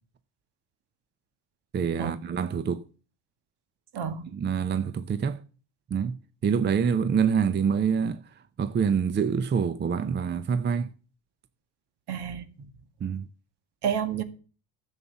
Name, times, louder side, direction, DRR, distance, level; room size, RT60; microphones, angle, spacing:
voice 1, 1.7-2.8 4.3-5.4 5.9-8.2 8.6-10.9 13.0-13.3, right 6 dB, 25° right, 0.6 m, -26 dB
voice 2, 3.9-4.3 12.1-12.7 13.8-14.2, right 8 dB, 60° right, 1.8 m, -30 dB
11.0 x 7.3 x 7.0 m
supercardioid pair, 95°, 46 cm